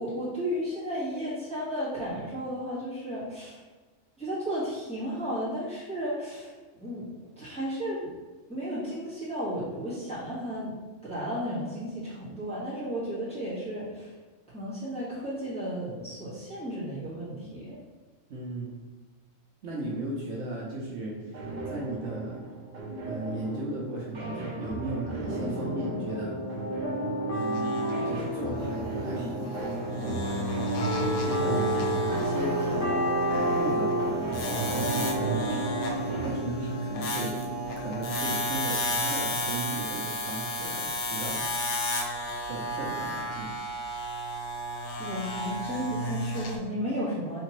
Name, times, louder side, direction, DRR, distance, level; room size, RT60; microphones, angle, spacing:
voice 1, 0.0-3.6 4.2-6.5 6.8-8.1 8.5-10.7 11.0-14.1 14.5-17.8 31.4-31.8 45.0-47.4, equal, 5° left, -10 dB, 1.4 m, -33 dB
voice 2, 18.3-18.7 19.6-21.4 21.7-22.4 23.0-26.4 27.3-29.6 31.2-31.5 31.9-32.6 33.6-35.7 36.0-37.3 37.8-41.4 42.5-43.5, right 2 dB, 65° right, -3 dB, 1.0 m, -36 dB
sound 1, 21.3-36.3, right 3 dB, 45° right, 0.6 m, -36 dB
sound 2, 25.2-37.9, equal, 30° left, 0.9 m, -31 dB
Hair-Cutting-Machine, 27.3-46.6, left 1 dB, 70° left, 0.9 m, -33 dB
4.3 x 2.8 x 3.0 m, 1.3 s
omnidirectional pair, 1.3 m